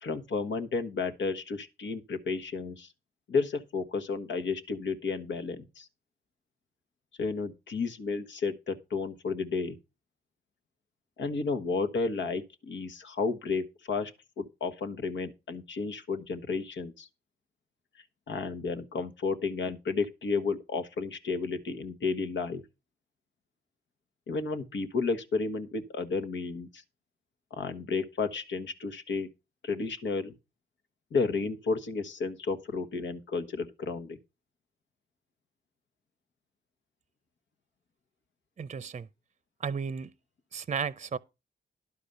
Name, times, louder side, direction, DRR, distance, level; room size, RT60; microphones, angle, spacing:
voice 1, 0.0-2.9 3.3-5.9 7.2-9.8 11.2-14.1 14.4-17.1 18.3-22.6 24.3-26.8 27.5-29.3 29.6-30.3 31.1-34.2, left 4 dB, 80° left, 1.3 m, -32 dB
voice 2, 38.6-39.1 39.6-40.1 40.5-41.2, right 6 dB, 40° right, 0.6 m, -34 dB
11.0 x 5.0 x 6.7 m
cardioid pair, 70°, 19 cm